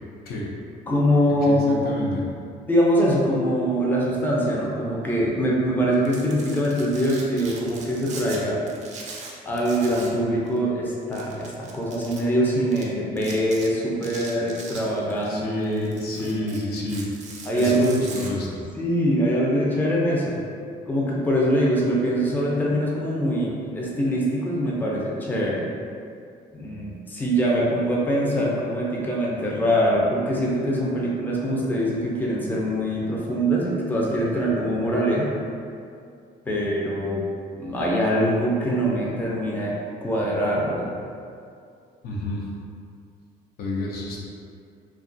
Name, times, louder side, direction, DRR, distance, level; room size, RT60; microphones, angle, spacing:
voice 1, 0.9-2.2 2.7-8.6 9.5-16.5 17.5-17.9 18.8-20.4 20.9-25.6 26.5-35.3 36.5-37.2 37.6-39.7 40.0-41.0, equal, 10° left, -5 dB, 0.4 m, -23 dB
voice 2, 1.4-2.3 15.2-17.1 17.6-18.6 42.0-42.5 43.6-44.2, left 2 dB, 65° left, -3 dB, 0.5 m, -29 dB
Domestic sounds home sounds, 5.9-8.4 8.7-10.2 10.5-10.6 11.1-12.2 12.7-12.8 13.2-13.7 14.0-15.3 15.6-18.3, right 4 dB, 45° right, 0.4 m, -40 dB
2.7 x 2.2 x 2.5 m, 2.4 s
cardioid pair, 110°, 17 cm